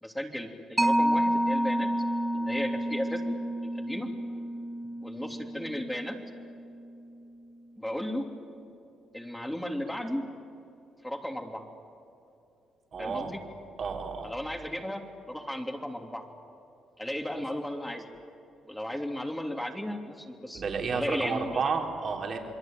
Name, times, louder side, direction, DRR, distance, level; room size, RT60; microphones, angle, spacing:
voice 1, 0.0-1.9 2.3-3.4 3.6-4.1 5.0-6.2 7.8-8.3 9.1-10.2 11.0-11.6 13.0-13.4 14.2-15.0 15.3-16.2 17.0-18.0 18.6-20.6 20.9-21.6, left 1 dB, 5° left, 3 dB, 3.1 m, -35 dB
Mallet percussion, 0.8-7.8, right 1 dB, 15° right, 1.6 m, -30 dB
voice 2, 12.9-13.3 13.8-14.3 20.5-22.4, right 5 dB, 50° right, 2 dB, 4.0 m, -31 dB
28.0 x 22.0 x 9.3 m, 2.7 s
cardioid pair, 90°, 0 cm